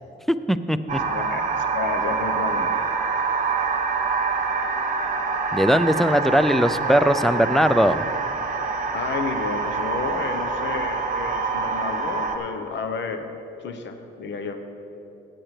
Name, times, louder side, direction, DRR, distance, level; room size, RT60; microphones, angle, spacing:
voice 1, 0.3-1.0 5.5-8.0, equal, ahead, 12 dB, 0.4 m, -20 dB
sound 1, 0.9-12.4, right 4 dB, 40° right, 1.1 m, -26 dB
voice 2, 1.1-1.4 1.7-2.8 8.9-13.3 13.6-14.6, left 5 dB, 65° left, 7 dB, 1.0 m, -31 dB
16.5 x 8.9 x 3.3 m, 3.0 s
cardioid pair, 90°, 20 cm